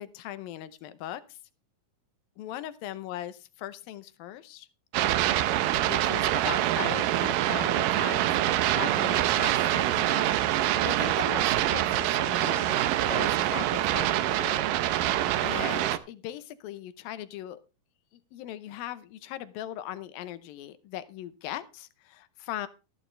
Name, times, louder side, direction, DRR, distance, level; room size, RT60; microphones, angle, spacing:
voice 1, 0.0-1.4 2.4-4.7 5.8-14.6 14.9-17.6 18.3-22.7, left 13 dB, 85° left, 13 dB, 2.6 m, -39 dB
sound 1, 4.9-16.0, right 13 dB, 80° right, 2.3 m, -25 dB
13.5 x 11.5 x 3.2 m, 0.30 s
omnidirectional pair, 4.0 m